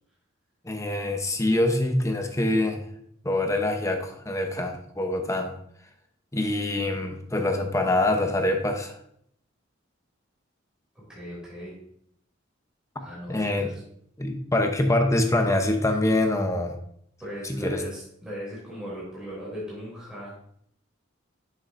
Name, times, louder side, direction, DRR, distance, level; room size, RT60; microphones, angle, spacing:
voice 1, 0.6-2.9 3.2-5.6 6.3-9.0 13.0-13.1 13.3-13.7 14.2-16.8 17.4-17.8, left 1 dB, 15° left, 4 dB, 0.8 m, -25 dB
voice 2, 10.9-11.8 13.0-13.8 17.2-20.3, equal, 5° right, -7 dB, 3.0 m, -38 dB
7.6 x 6.6 x 2.6 m, 0.68 s
head